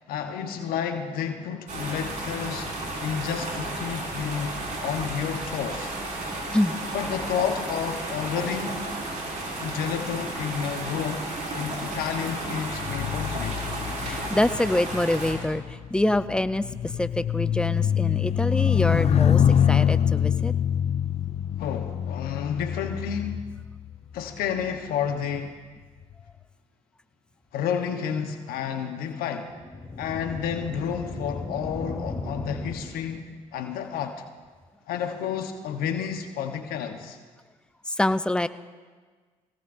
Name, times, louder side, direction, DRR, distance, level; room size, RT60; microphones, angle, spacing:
voice 1, 0.1-2.7 3.0-5.9 6.9-8.8 9.6-11.2 11.5-13.7 21.6-23.4 24.1-25.6 27.5-29.5 30.0-34.2 34.9-37.2, left 8 dB, 75° left, 6 dB, 1.1 m, -30 dB
sound 1, 1.7-15.3, right 2 dB, 50° right, 5.0 m, -33 dB
voice 2, 6.3-6.8 14.0-20.5 37.9-38.5, left 1 dB, 5° left, 12 dB, 0.6 m, -26 dB
sound 2, 12.7-24.3 25.1-25.4, left 9 dB, 45° left, 0.4 m, -25 dB
sound 3, 29.5-33.3, left 2 dB, 20° left, 3.5 m, -36 dB
24.5 x 17.5 x 2.6 m, 1.5 s
hypercardioid pair, 60°, 16 cm